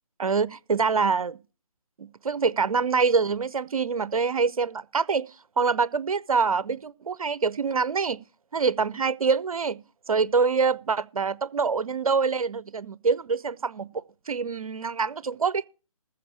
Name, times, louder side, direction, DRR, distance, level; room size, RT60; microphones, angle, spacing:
voice 1, 0.2-1.4 2.0-5.3 5.6-8.2 8.5-9.8 10.1-13.9 14.3-15.7, right 5 dB, 75° right, 0.6 m, -25 dB
14.5 x 4.9 x 8.4 m
figure-of-eight pair, 145°, 18 cm